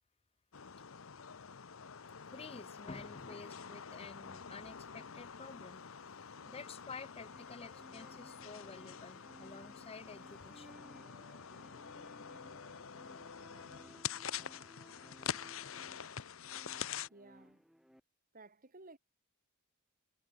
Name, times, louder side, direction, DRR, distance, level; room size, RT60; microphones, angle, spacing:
sound 1, 0.5-17.1, left 8 dB, 80° left, 0.9 m, -46 dB
voice 1, 2.3-5.8 6.2-10.7, left 4 dB, 30° left, 0.7 m, -50 dB
sound 2, 4.1-18.0, equal, ahead, 0.8 m, -61 dB
voice 2, 17.1-17.6 18.3-19.0, right 2 dB, 45° right, 2.7 m, -56 dB
head